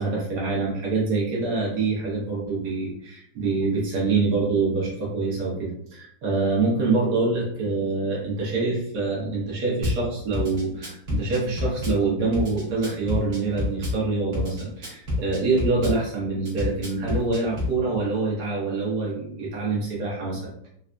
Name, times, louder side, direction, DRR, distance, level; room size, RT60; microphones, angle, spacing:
voice 1, 0.0-20.7, right 3 dB, 75° right, -5 dB, 1.4 m, -25 dB
Drum kit / Bass drum, 9.8-10.0 10.3-12.0 12.3-14.0 14.3-16.0 16.5-17.7, left 2 dB, 45° right, 1.3 m, -28 dB
3.9 x 2.5 x 2.2 m, 0.69 s
omnidirectional pair, 1.8 m